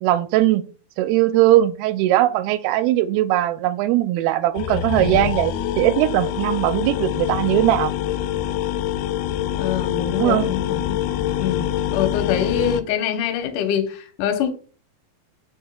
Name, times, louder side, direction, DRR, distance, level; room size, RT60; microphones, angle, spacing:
voice 1, 0.0-0.6 1.0-7.9 10.2-10.5, right 14 dB, 90° right, 2.5 m, -19 dB
sound 1, 4.6-12.8, left 12 dB, 90° left, 2.4 m, -25 dB
voice 2, 9.6-11.0 11.3-14.5, left 8 dB, 70° left, 2.2 m, -25 dB
8.8 x 4.8 x 2.3 m
omnidirectional pair, 4.3 m